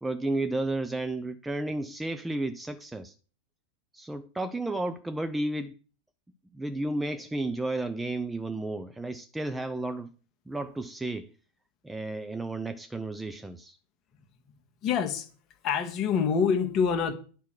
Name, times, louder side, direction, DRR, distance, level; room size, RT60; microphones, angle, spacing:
voice 1, 0.0-3.1 3.9-5.7 6.5-10.1 10.5-11.3 11.8-13.8, right 2 dB, 5° right, 0.6 m, -32 dB
voice 2, 14.8-15.3 15.6-17.1, left 6 dB, 35° left, 1.7 m, -26 dB
10.0 x 5.7 x 6.3 m
figure-of-eight pair, 90°, 0 cm